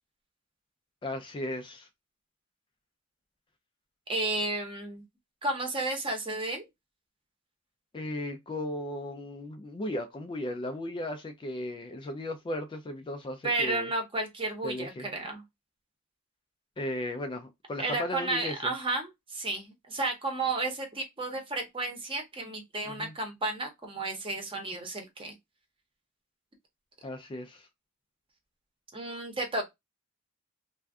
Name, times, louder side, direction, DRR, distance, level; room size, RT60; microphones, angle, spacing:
voice 1, 1.0-1.9 7.9-13.9 14.6-15.1 16.8-18.7 22.9-23.1 27.0-27.7, left 1 dB, 25° left, 0.3 m, -36 dB
voice 2, 4.1-5.0 5.4-6.6 13.4-15.4 17.8-25.3 28.9-29.7, right 2 dB, 25° right, 0.8 m, -32 dB
2.5 x 2.2 x 3.4 m
head